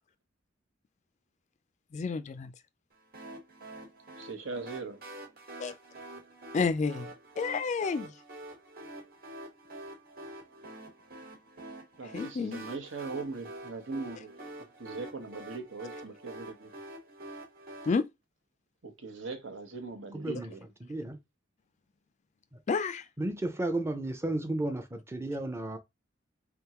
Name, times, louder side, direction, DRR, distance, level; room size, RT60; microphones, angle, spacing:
voice 1, 1.9-2.5 5.6-5.8 6.5-8.1 12.1-12.6 17.9-18.0 22.7-23.1, left 4 dB, 35° left, 0.3 m, -30 dB
sound 1, 3.1-17.9, right 1 dB, 50° right, 1.4 m, -47 dB
voice 2, 4.2-5.0 12.0-14.4 14.8-16.7 18.8-20.7, right 3 dB, 75° right, 1.1 m, -40 dB
voice 3, 20.1-20.5 20.8-21.2 23.2-25.8, right 1 dB, 15° right, 0.6 m, -33 dB
3.6 x 3.5 x 2.9 m
head